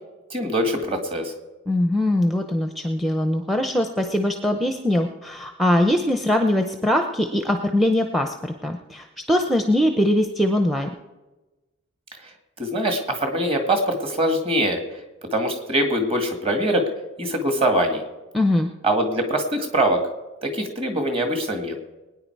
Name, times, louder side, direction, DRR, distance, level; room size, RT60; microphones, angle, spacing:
voice 1, 0.3-1.3 12.6-14.8 15.3-16.8 17.2-18.0 18.8-20.0 20.4-21.7, right 1 dB, 25° right, 5 dB, 2.0 m, -23 dB
voice 2, 1.7-10.9 18.3-18.7, left 1 dB, ahead, 5 dB, 0.6 m, -22 dB
21.0 x 9.7 x 4.6 m, 1.1 s
head